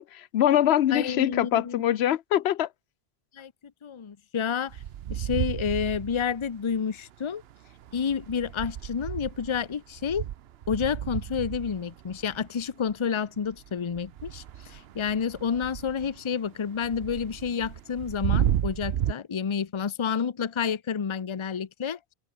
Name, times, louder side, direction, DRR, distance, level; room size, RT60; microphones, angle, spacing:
voice 1, 0.0-2.7, left 11 dB, 90° left, 0.9 m, -23 dB
voice 2, 0.9-1.8 3.3-3.5 3.8-4.8 5.1-7.4 7.9-10.2 10.7-22.0, left 7 dB, 35° left, 0.7 m, -29 dB
sound 1, 4.7-6.8 7.4-13.1 13.5-19.1, right 11 dB, 75° right, 0.9 m, -33 dB
open air
omnidirectional pair, 1.0 m